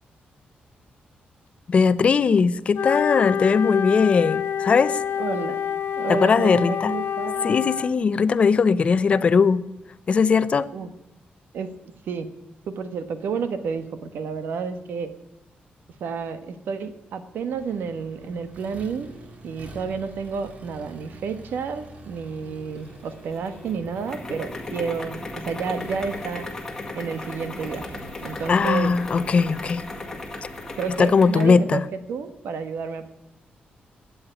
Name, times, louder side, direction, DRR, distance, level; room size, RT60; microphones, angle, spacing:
voice 1, 1.7-5.0 6.1-6.9 7.4-9.6 10.1-10.7 28.5-29.8 31.0-31.8, left 5 dB, 35° left, 16 dB, 0.5 m, -19 dB
Wind instrument woodwind instrument, 2.7-7.9, left 8 dB, 90° left, 0.9 m, -27 dB
voice 2, 5.2-5.6 5.9-7.6 10.7-10.9 11.5-11.7 12.1-12.3 12.7-15.1 16.0-19.1 19.4-26.5 26.9-27.8 28.2-28.9 30.8-31.8 32.1-33.1, right 5 dB, 80° right, 10 dB, 1.4 m, -30 dB
Accelerating revving vroom, 17.5-30.8, right 2 dB, 40° right, 2.1 m, -45 dB
sound 1, 22.8-31.6, left 2 dB, 10° left, 1.9 m, -37 dB
13.0 x 8.7 x 9.9 m, 1.0 s
wide cardioid pair, 180°, 3 cm